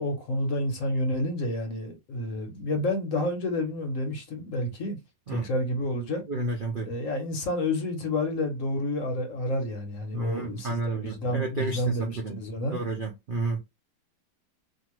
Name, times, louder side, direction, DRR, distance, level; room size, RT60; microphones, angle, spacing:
voice 1, 0.0-5.0 5.3-6.2 6.8-10.7 11.0-12.8, left 1 dB, 55° left, 1.0 m, -29 dB
voice 2, 6.3-6.9 10.1-12.4 12.7-13.6, right 2 dB, 75° right, 0.4 m, -31 dB
2.7 x 2.5 x 3.0 m
omnidirectional pair, 1.9 m